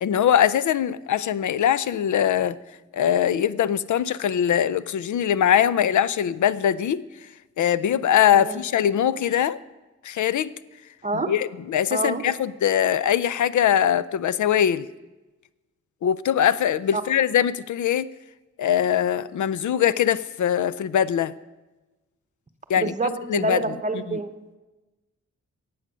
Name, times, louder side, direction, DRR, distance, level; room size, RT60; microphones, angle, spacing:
voice 1, 0.0-2.6 2.9-7.0 7.6-9.6 10.0-10.5 11.3-14.9 16.0-18.1 18.6-21.3 22.7-22.9 23.3-23.6 24.1-24.2, left 9 dB, 85° left, 18 dB, 0.5 m, -22 dB
voice 2, 11.9-12.2 16.9-17.0 22.8-24.3, right 3 dB, 25° right, 8 dB, 0.9 m, -27 dB
15.0 x 8.6 x 6.3 m, 1.1 s
wide cardioid pair, 175°, 29 cm